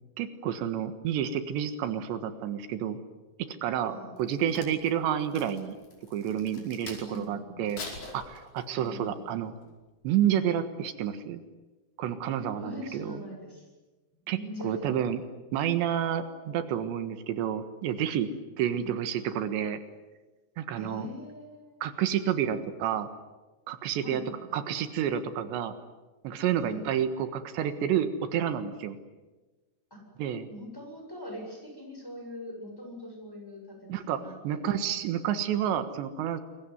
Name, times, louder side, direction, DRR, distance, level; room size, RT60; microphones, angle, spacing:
voice 1, 0.2-3.0 3.6-5.8 6.1-7.8 8.1-9.5 10.0-11.4 12.0-13.2 14.3-14.4 14.6-15.2 15.5-18.3 18.6-19.8 20.6-21.1 21.8-23.1 23.7-24.2 24.5-25.7 26.2-29.0 30.2-30.5 33.9-36.4, right 9 dB, 85° right, 10 dB, 3.7 m, -29 dB
voice 2, 3.9-4.3 7.0-7.6 8.8-9.4 12.6-13.7 14.3-15.0 18.7-18.9 20.8-21.8 24.0-24.7 26.6-26.9 29.9-30.0 30.5-34.7, equal, 5° left, 1 dB, 7.1 m, -42 dB
Crack, 4.2-7.2 7.7-8.9 9.4-9.6, left 3 dB, 50° left, 6.6 m, -44 dB
27.5 x 22.5 x 9.6 m, 1.2 s
omnidirectional pair, 5.0 m